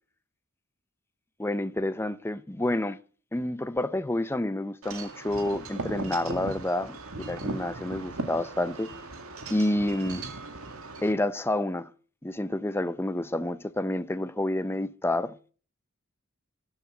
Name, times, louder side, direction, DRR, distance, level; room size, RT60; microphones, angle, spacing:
voice 1, 1.4-3.0 3.3-8.9 9.5-10.3 11.0-11.9 12.2-15.4, left 1 dB, 10° left, 0.6 m, -29 dB
Wind chime / Wind, 4.8-11.1, right 3 dB, 85° right, 2.1 m, -38 dB
13.5 x 9.8 x 8.0 m
head